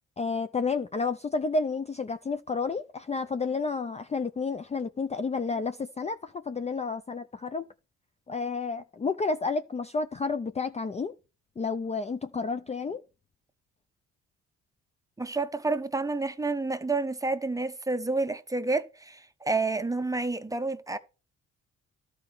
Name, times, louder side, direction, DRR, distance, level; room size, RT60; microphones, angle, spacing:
voice 1, 0.2-7.7 8.3-11.1 11.6-13.0, left 4 dB, 20° left, 0.4 m, -30 dB
voice 2, 15.2-21.0, right 3 dB, 10° right, 0.8 m, -29 dB
12.0 x 4.5 x 6.0 m
cardioid pair, 90°, 30 cm